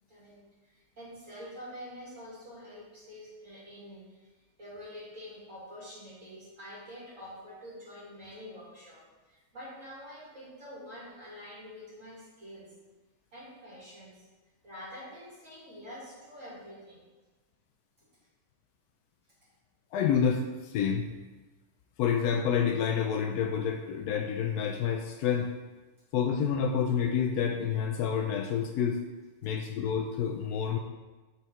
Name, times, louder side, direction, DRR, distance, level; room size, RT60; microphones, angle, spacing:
voice 1, 0.1-4.3 4.6-12.7 13.3-14.3 14.6-17.0 18.0-18.1, equal, 55° right, -8 dB, 2.5 m, -47 dB
voice 2, 19.9-21.1 22.0-25.5 26.1-29.0 29.4-30.8, left 7 dB, 85° left, 4 dB, 1.1 m, -28 dB
6.9 x 4.4 x 4.4 m, 1.2 s
omnidirectional pair, 1.6 m